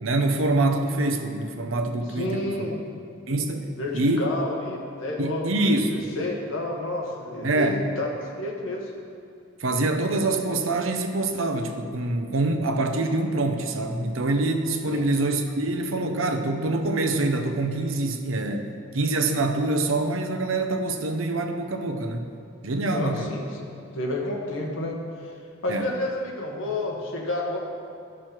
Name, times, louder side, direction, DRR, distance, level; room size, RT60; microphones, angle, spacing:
voice 1, 0.0-2.7 3.3-4.3 5.2-6.1 7.4-7.8 9.6-22.3 22.6-23.3 25.7-25.9, right 2 dB, 90° right, 6 dB, 0.8 m, -25 dB
voice 2, 2.1-2.7 3.8-8.1 8.4-8.9 14.9-15.1 22.9-23.6 23.9-25.4 25.6-27.6, left 2 dB, 80° left, -1 dB, 1.5 m, -30 dB
11.5 x 6.2 x 4.5 m, 2.3 s
head